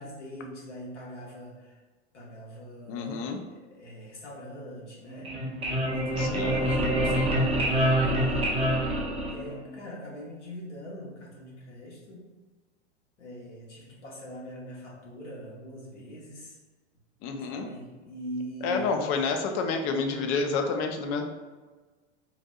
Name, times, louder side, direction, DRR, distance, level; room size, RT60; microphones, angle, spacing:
voice 1, 0.0-1.8 2.1-5.3 5.9-8.8 9.3-12.2 13.2-16.6 17.5-19.0, equal, 80° left, -3 dB, 1.1 m, -42 dB
voice 2, 2.9-3.4 6.2-6.6 17.2-17.7 18.6-21.2, left 4 dB, 40° left, 5 dB, 0.5 m, -29 dB
sound 1, 5.1-9.8, right 1 dB, 15° right, 0.7 m, -26 dB
3.9 x 2.6 x 2.3 m, 1.3 s
hypercardioid pair, 95°, 35 cm